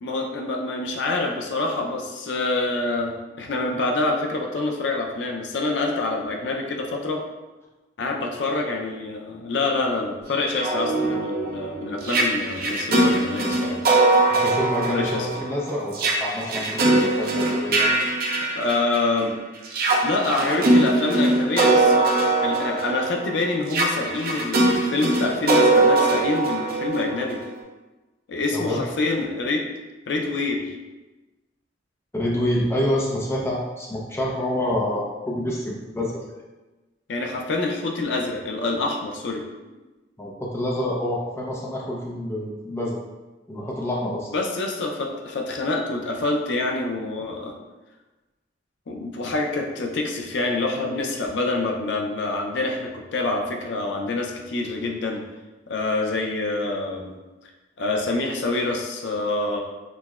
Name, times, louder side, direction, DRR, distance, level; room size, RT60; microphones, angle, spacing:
voice 1, 0.0-7.2 8.0-13.8 14.9-15.3 18.5-19.4 20.0-27.4 28.3-29.7 30.1-30.8 37.1-39.4 44.3-47.5 48.9-55.2 55.7-57.1 57.8-59.6, left 2 dB, 75° left, 2 dB, 0.5 m, -26 dB
sound 1, 10.4-19.2 19.7-27.5, right 2 dB, 55° right, 0.6 m, -21 dB
voice 2, 14.3-17.9 28.5-28.8 32.1-36.2 40.2-43.0 43.5-44.3, left 1 dB, 15° left, -3 dB, 0.5 m, -27 dB
6.1 x 2.2 x 2.3 m, 1.1 s
head